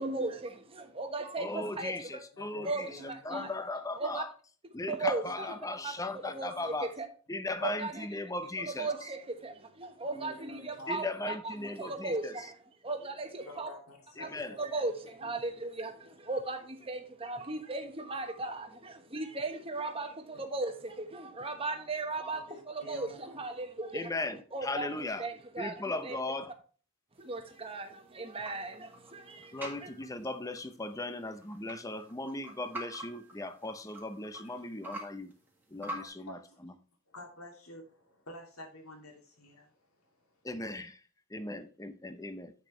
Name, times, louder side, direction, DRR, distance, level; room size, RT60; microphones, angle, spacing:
voice 1, 0.0-2.2 2.6-3.5 3.9-4.2 4.9-5.5 5.8-7.1 7.6-8.1 8.6-12.5 12.8-13.7 14.2-14.3 14.6-24.1 24.5-26.2 27.2-29.9, right 2 dB, 25° right, 1.1 m, -37 dB
voice 2, 1.4-2.9 3.2-4.3 4.7-6.9 7.3-8.9 10.9-12.4 14.2-14.5 23.9-25.3 25.6-26.5 29.5-35.3 35.7-36.7 40.4-41.0 41.3-42.5, left 2 dB, 15° left, 0.7 m, -37 dB
voice 3, 2.4-3.4 5.2-5.3 5.7-5.8 6.2-6.6 10.0-11.3 11.6-12.1 13.4-14.9 15.2-15.5 15.8-16.1 17.5-17.6 20.3-20.4 22.3-23.4 34.4-34.5 36.0-36.6 37.1-40.4, left 1 dB, 75° left, 2.6 m, -50 dB
sound 1, 27.2-36.1, right 1 dB, 10° right, 1.8 m, -47 dB
8.4 x 6.5 x 3.2 m
head